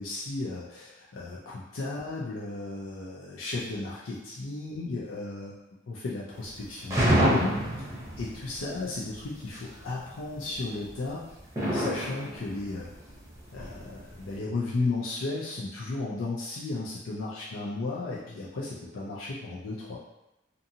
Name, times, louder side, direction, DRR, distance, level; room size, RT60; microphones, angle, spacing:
voice 1, 0.0-5.6 5.9-7.5 8.2-11.2 11.6-12.9 13.5-20.0, left 3 dB, 85° left, -6 dB, 0.5 m, -34 dB
sound 1, 6.3-6.6 6.9-8.8 9.2-9.8 10.5-10.9 11.4-14.3, right 1 dB, 15° right, 0.7 m, -27 dB
2.6 x 2.5 x 2.7 m, 0.92 s
head